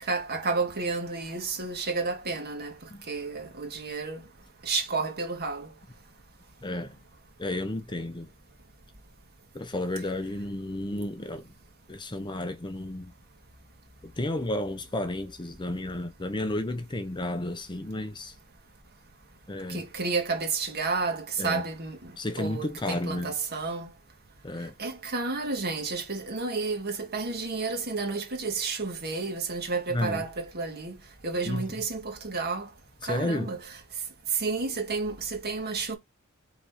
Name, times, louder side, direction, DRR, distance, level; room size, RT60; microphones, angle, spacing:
voice 1, 0.1-2.7 3.1-4.2 4.6-5.7 19.7-22.0 22.4-23.9 24.8-31.0 31.2-32.7 33.0-33.6 34.4-36.0, right 4 dB, 45° right, 1.8 m, -31 dB
voice 2, 6.6-7.0 7.4-8.3 9.5-11.5 11.9-13.1 14.0-18.3 19.5-19.9 21.4-21.6 22.2-23.3 24.4-24.8 29.9-30.2 31.4-31.8 33.0-33.5, left 1 dB, 20° left, 0.7 m, -32 dB
5.0 x 4.2 x 5.7 m
head